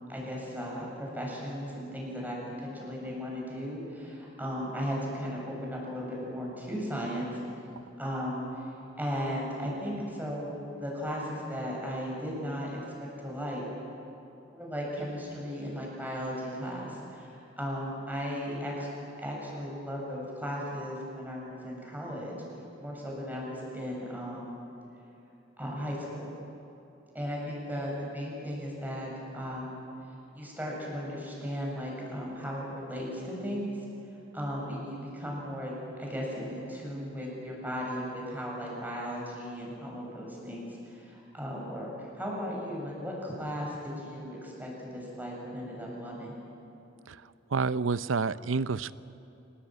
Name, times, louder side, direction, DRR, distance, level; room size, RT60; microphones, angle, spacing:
voice 1, 0.1-7.4 8.0-13.6 14.5-18.9 19.2-22.4 22.8-24.6 25.6-26.3 27.1-29.9 30.3-33.8 34.3-35.7 36.0-46.3, equal, 10° right, -3 dB, 7.3 m, -36 dB
voice 2, 47.5-48.9, right 4 dB, 80° right, 16 dB, 0.6 m, -29 dB
26.5 x 19.5 x 9.2 m, 3.0 s
head